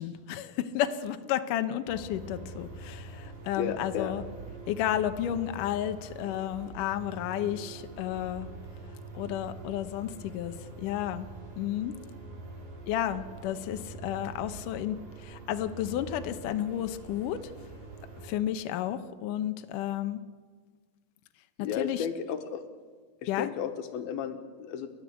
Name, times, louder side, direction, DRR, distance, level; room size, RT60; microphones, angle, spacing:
voice 1, 0.0-4.2 4.7-8.5 9.1-11.3 11.6-11.9 12.9-17.5 18.2-20.2 21.6-22.1 23.3-23.5, left 11 dB, 70° left, 9 dB, 2.3 m, -32 dB
sound 1, 1.9-18.3, right 3 dB, 65° right, 4.8 m, -45 dB
voice 2, 3.6-4.1 21.6-22.6 23.2-24.9, left 7 dB, 90° left, 8 dB, 3.3 m, -33 dB
29.5 x 12.5 x 8.2 m, 1.5 s
omnidirectional pair, 4.2 m